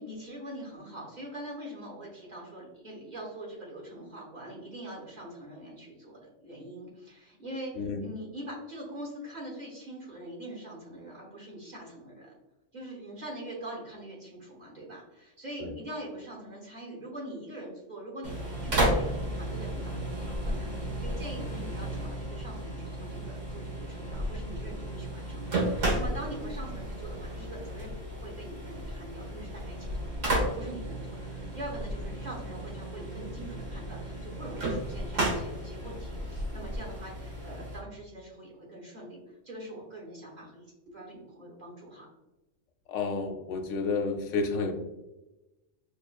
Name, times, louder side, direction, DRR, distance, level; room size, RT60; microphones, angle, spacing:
voice 1, 0.0-12.4 12.7-30.1 30.5-42.1, right 1 dB, 40° right, -3 dB, 1.1 m, -43 dB
sound 1, 18.2-37.8, right 1 dB, 80° right, 1.5 m, -33 dB
voice 2, 42.9-44.7, left 4 dB, 90° left, 3 dB, 0.9 m, -30 dB
5.3 x 2.5 x 2.3 m, 1.0 s
omnidirectional pair, 1.3 m